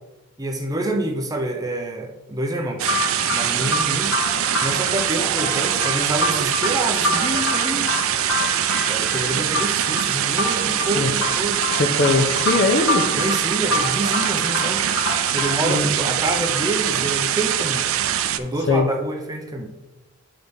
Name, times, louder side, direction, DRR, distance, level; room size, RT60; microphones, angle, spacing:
voice 1, 0.4-2.9 3.3-4.3 4.6-8.0 8.9-11.6 13.2-14.9 15.3-17.8 18.4-19.7, right 1 dB, 15° right, 3 dB, 0.6 m, -27 dB
sound 1, 2.8-15.8, left 2 dB, 85° left, 2.1 m, -28 dB
sound 2, 2.8-18.4, right 10 dB, 70° right, 0.4 m, -23 dB
voice 2, 11.7-13.2 15.7-15.9 18.7-18.9, left 3 dB, 50° left, 7 dB, 0.6 m, -20 dB
9.8 x 3.9 x 3.5 m, 1.1 s
head